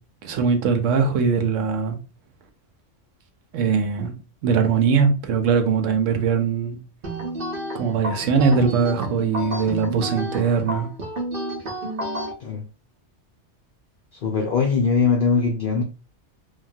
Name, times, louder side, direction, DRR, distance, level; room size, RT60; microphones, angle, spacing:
voice 1, 0.2-2.0 3.5-4.1 4.4-6.8 7.7-10.9, right 5 dB, 85° right, 1.0 m, -21 dB
sound 1, 7.0-12.3, right 1 dB, 50° right, 0.9 m, -30 dB
voice 2, 14.2-15.8, left 5 dB, 55° left, 0.6 m, -21 dB
3.0 x 2.3 x 2.6 m
omnidirectional pair, 1.3 m